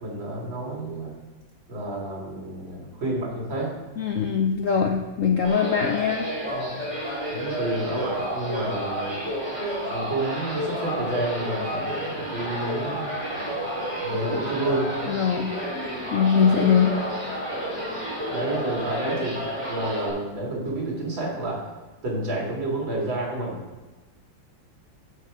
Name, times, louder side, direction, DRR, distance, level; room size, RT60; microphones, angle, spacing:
voice 1, 0.0-1.1 1.7-3.7 6.5-6.8 7.3-9.2 9.9-13.2 14.0-14.9 18.3-21.6 22.0-23.6, right 2 dB, 80° right, -3 dB, 3.3 m, -30 dB
voice 2, 4.0-6.3 14.3-14.4 15.1-15.5 16.1-16.9, left 7 dB, 70° left, 3 dB, 0.7 m, -22 dB
sound 1, 5.4-20.1, equal, 15° right, 2.8 m, -30 dB
8.6 x 6.5 x 5.0 m, 1.2 s
omnidirectional pair, 2.1 m